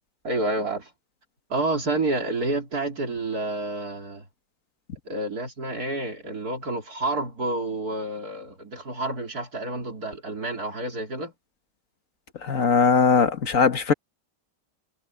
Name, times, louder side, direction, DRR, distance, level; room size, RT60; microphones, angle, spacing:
voice 1, 0.2-0.9 1.5-4.3 5.1-11.3, right 2 dB, 60° right, 3.8 m, -29 dB
voice 2, 12.4-13.9, left 5 dB, 50° left, 1.7 m, -20 dB
omnidirectional pair, 1.9 m